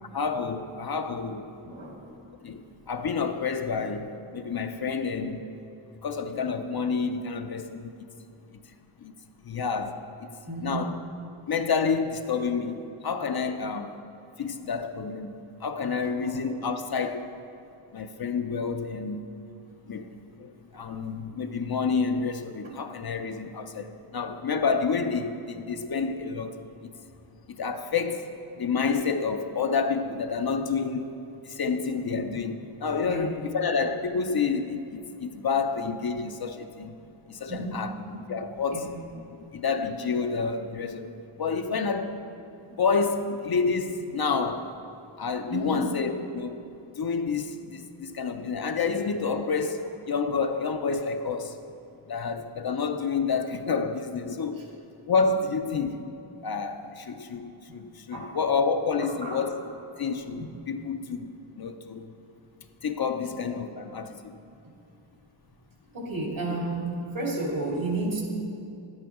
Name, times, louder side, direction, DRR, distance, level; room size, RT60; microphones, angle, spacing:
voice 1, 0.0-1.5 2.4-5.6 6.0-8.1 9.0-9.1 9.4-11.0 11.5-14.0 14.4-17.3 17.9-19.2 19.9-26.9 27.5-37.0 37.3-37.9 38.3-39.0 39.5-42.2 42.8-44.7 45.2-46.6 47.0-51.6 52.1-54.6 55.1-56.2 56.4-59.6 60.0-62.1 62.8-64.4, left 5 dB, 50° left, 0.5 m, -29 dB
voice 2, 1.6-2.0 10.4-10.8 16.2-16.4 20.7-20.8 22.6-22.7 33.0-33.3 37.5-38.2 38.7-39.0 45.5-45.9 58.1-58.4 59.2-59.4 60.4-60.5 63.3-63.4 65.9-68.2, right 2 dB, 70° right, 2.3 m, -32 dB
11.0 x 8.8 x 3.6 m
wide cardioid pair, 70°, 49 cm